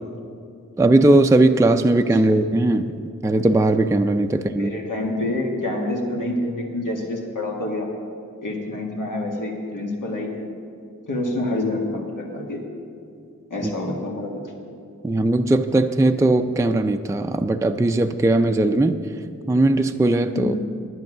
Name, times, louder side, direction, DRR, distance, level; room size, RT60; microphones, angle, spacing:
voice 1, 0.8-4.7 15.0-19.0 19.5-20.5, right 2 dB, 10° right, 7 dB, 0.4 m, -18 dB
voice 2, 4.5-7.9 8.4-10.5 11.1-12.6 13.5-14.4 20.3-20.6, left 1 dB, 85° left, 0 dB, 1.7 m, -27 dB
10.5 x 9.5 x 6.1 m, 2.4 s
wide cardioid pair, 70°, 31 cm